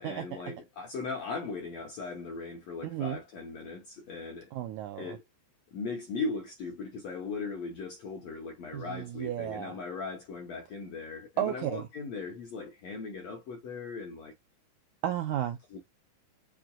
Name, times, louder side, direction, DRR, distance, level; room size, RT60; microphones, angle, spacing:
voice 1, 0.0-4.5 5.0-5.2 5.7-14.3 15.7-15.8, left 4 dB, 65° left, 1.7 m, -38 dB
voice 2, 2.8-3.2 4.5-5.2 8.7-9.7 11.4-11.8 15.0-15.6, right 12 dB, 80° right, 1.8 m, -33 dB
5.9 x 2.5 x 2.2 m
omnidirectional pair, 4.0 m